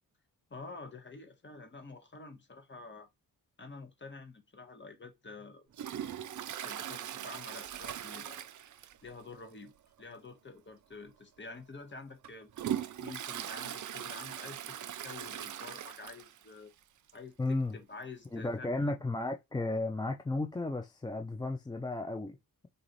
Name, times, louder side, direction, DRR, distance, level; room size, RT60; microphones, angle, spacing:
voice 1, 0.5-3.1 3.6-5.7 6.5-8.5 9.0-9.7 10.0-12.5 13.0-16.7 17.1-18.7, left 3 dB, 30° left, 1.1 m, -48 dB
Toilet flush, 5.7-9.2 9.5-9.6 10.0-10.1 10.9-11.0 11.6-16.5 16.8-16.9 17.1-17.2 18.2-18.3, right 10 dB, 55° right, 0.5 m, -40 dB
voice 2, 17.4-17.8 18.3-22.4, left 2 dB, 10° left, 0.4 m, -34 dB
3.9 x 3.1 x 3.9 m
wide cardioid pair, 110°, 36 cm